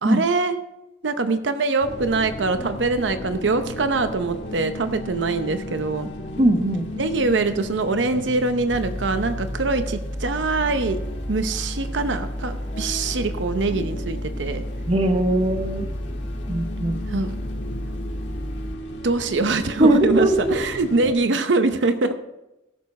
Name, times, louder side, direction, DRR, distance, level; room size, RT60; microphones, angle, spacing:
voice 1, 0.0-0.5 1.0-6.1 7.0-11.0 11.3-14.6 17.1-17.3 19.0-22.2, right 3 dB, 85° right, 9 dB, 0.7 m, -23 dB
sound 1, 1.8-21.2, left 1 dB, 70° left, 1.9 m, -36 dB
voice 2, 6.4-6.9 14.9-15.9 16.5-17.0 19.8-20.7, right 1 dB, 35° right, 6 dB, 0.9 m, -20 dB
sound 2, 8.7-18.8, equal, 10° left, 1.3 m, -32 dB
16.0 x 7.0 x 4.2 m, 0.93 s
head